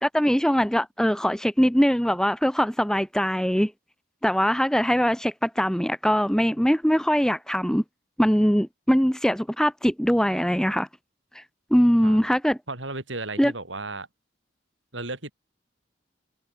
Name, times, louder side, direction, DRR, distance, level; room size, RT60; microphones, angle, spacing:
voice 1, 0.0-3.7 4.2-7.8 8.2-10.9 11.4-11.5 11.7-12.6 13.4-13.5, equal, 5° left, 1.9 m, -22 dB
voice 2, 12.7-14.1 14.9-15.3, right 2 dB, 75° right, 5.4 m, -34 dB
head